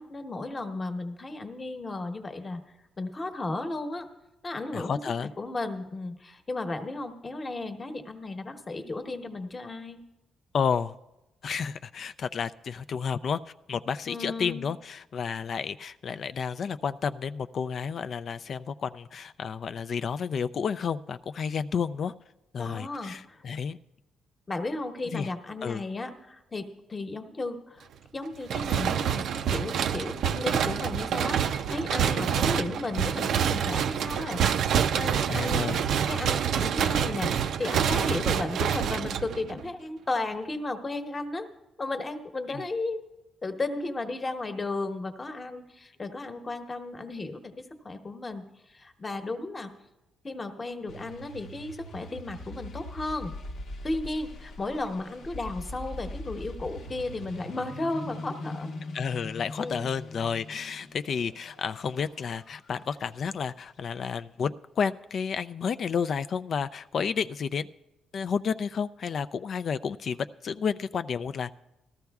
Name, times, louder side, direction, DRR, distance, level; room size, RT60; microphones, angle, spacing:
voice 1, 0.0-2.6 3.0-4.1 4.4-10.0 14.1-14.7 22.6-23.4 24.5-27.9 28.1-34.4 34.9-41.5 41.8-43.0 43.4-49.7 50.2-53.4 53.8-58.7 59.6-59.9, left 2 dB, 30° left, 6 dB, 1.1 m, -34 dB
voice 2, 4.7-5.3 10.5-10.9 11.4-13.4 13.7-22.1 22.5-23.8 25.1-25.3 25.6-25.8 32.1-32.2 35.3-35.8 38.1-38.2 42.5-42.6 58.9-67.7 68.1-71.5, left 6 dB, 55° left, 12 dB, 0.3 m, -31 dB
sound 1, 28.5-39.7, right 8 dB, 75° right, 0.4 m, -27 dB
sound 2, 50.9-63.3, left 1 dB, 80° left, 1.0 m, -42 dB
18.5 x 13.5 x 2.3 m, 0.97 s
cardioid pair, 85°, 0 cm